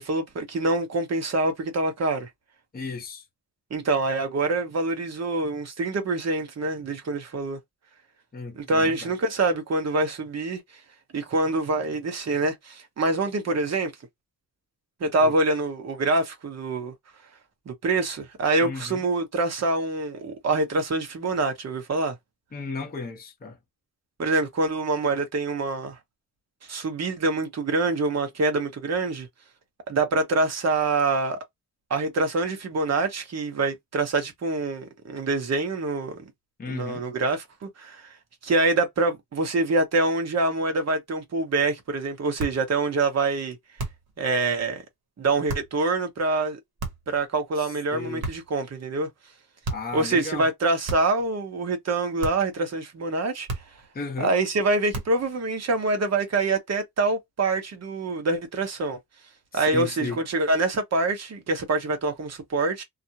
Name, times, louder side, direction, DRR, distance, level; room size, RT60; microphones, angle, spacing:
voice 1, 0.0-2.3 3.7-7.6 8.5-10.6 11.1-13.9 15.0-16.9 17.7-22.2 24.2-26.0 26.6-29.3 29.9-31.4 31.9-36.2 36.7-38.1 38.4-43.6 44.2-44.8 45.2-46.6 47.1-49.1 49.9-53.5 54.2-59.0 59.5-62.8, right 3 dB, 45° right, 0.9 m, -25 dB
voice 2, 2.7-3.2 8.3-9.1 15.2-15.3 18.6-19.0 22.5-23.6 36.6-37.1 47.6-48.2 49.7-50.5 53.9-54.4 59.5-60.2, left 4 dB, 25° left, 0.7 m, -35 dB
sound 1, 42.4-42.7 43.8-44.2 45.5-45.8 46.8-47.2 48.2-48.6 49.6-50.0 50.9-51.3 52.2-52.6 53.5-53.9 54.9-55.3, right 2 dB, 90° right, 1.0 m, -34 dB
2.4 x 2.0 x 2.7 m
wide cardioid pair, 145°, 36 cm